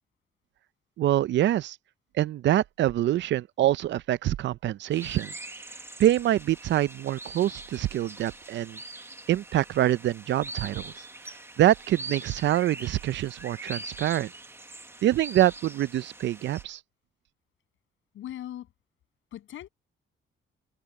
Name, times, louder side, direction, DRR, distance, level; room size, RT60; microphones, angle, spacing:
voice 1, 1.0-1.8 2.1-5.3 6.0-8.8 9.3-14.3 15.0-16.8, right 13 dB, 65° right, 0.5 m, -25 dB
sound 1, 4.9-16.6, right 2 dB, 10° right, 1.3 m, -43 dB
voice 2, 18.1-18.7 19.3-19.7, left 12 dB, 80° left, 7.9 m, -39 dB
cardioid pair, 90°, 20 cm